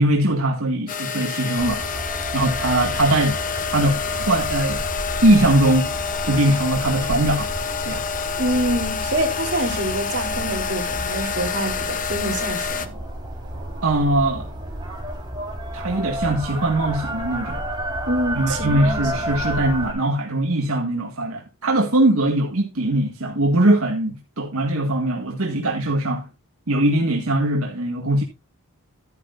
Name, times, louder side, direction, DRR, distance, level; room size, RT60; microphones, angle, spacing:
voice 1, 0.0-1.8 2.3-3.4 3.7-4.8 5.2-5.9 6.2-7.5 7.8-8.0 13.8-14.5 15.7-17.6 18.4-26.3 26.7-28.2, right 1 dB, 85° right, 1.9 m, -21 dB
sound 1, 0.9-12.9, left 6 dB, 40° left, 0.9 m, -28 dB
sound 2, 1.6-19.9, right 1 dB, 20° right, 4.4 m, -31 dB
voice 2, 8.4-12.9 18.1-19.2, right 1 dB, 55° right, 3.9 m, -26 dB
13.0 x 9.9 x 2.6 m
head